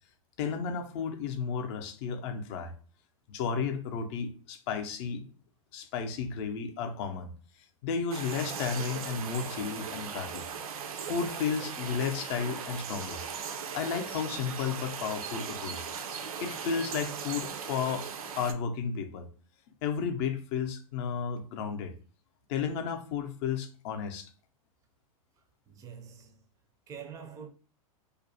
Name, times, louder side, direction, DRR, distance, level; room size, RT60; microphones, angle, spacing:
voice 1, 0.4-2.7 3.3-5.3 5.7-7.3 7.8-10.5 11.0-13.2 13.7-15.8 16.4-19.3 19.8-21.9 22.5-24.3, left 6 dB, 50° left, 0.5 m, -33 dB
sound 1, 8.1-18.5, right 6 dB, 85° right, 0.4 m, -38 dB
voice 2, 25.7-26.4 26.9-27.5, right 7 dB, 20° right, 0.4 m, -45 dB
2.4 x 2.0 x 2.6 m
hypercardioid pair, 115°, 18 cm